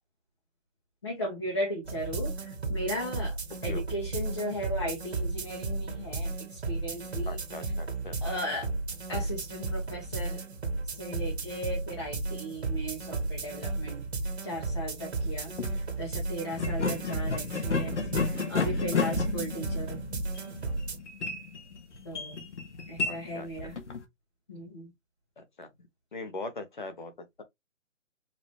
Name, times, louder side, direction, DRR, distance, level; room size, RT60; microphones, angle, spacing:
voice 1, 1.0-3.4 3.6-7.4 8.2-8.7 9.1-10.4 10.9-14.1 14.4-18.1 18.5-20.0 22.0-22.4 22.9-23.8 24.5-24.9, equal, 20° left, 1.0 m, -36 dB
sound 1, 1.8-21.0, right 3 dB, 55° right, 1.8 m, -34 dB
voice 2, 7.2-8.2 23.1-23.5 25.4-25.7 26.1-27.1, left 2 dB, 40° left, 1.1 m, -40 dB
sound 2, 15.5-15.7 16.5-24.0, left 5 dB, 65° left, 1.3 m, -32 dB
5.2 x 2.9 x 3.3 m
hypercardioid pair, 175°, 39 cm